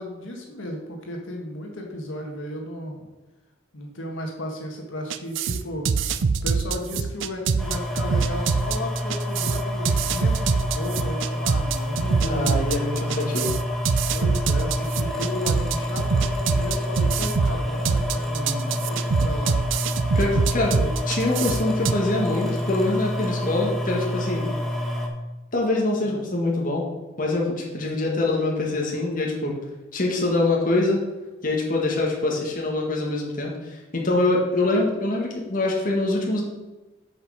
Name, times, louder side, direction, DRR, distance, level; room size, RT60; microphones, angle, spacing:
voice 1, 0.0-3.1 3.7-5.9 6.4-12.6 14.1-19.6 20.8-20.9 26.0-26.3, equal, 80° left, 1 dB, 1.6 m, -34 dB
sound 1, 5.1-21.9, right 5 dB, 70° right, 0.5 m, -24 dB
sound 2, 7.6-25.1, left 1 dB, ahead, 1.3 m, -28 dB
voice 2, 12.2-13.5 18.4-18.7 20.1-20.8 21.1-24.5 25.5-26.9 27.2-29.6 29.9-31.0 31.4-36.4, left 2 dB, 45° left, -2 dB, 1.8 m, -24 dB
7.8 x 5.6 x 6.4 m, 1.1 s
head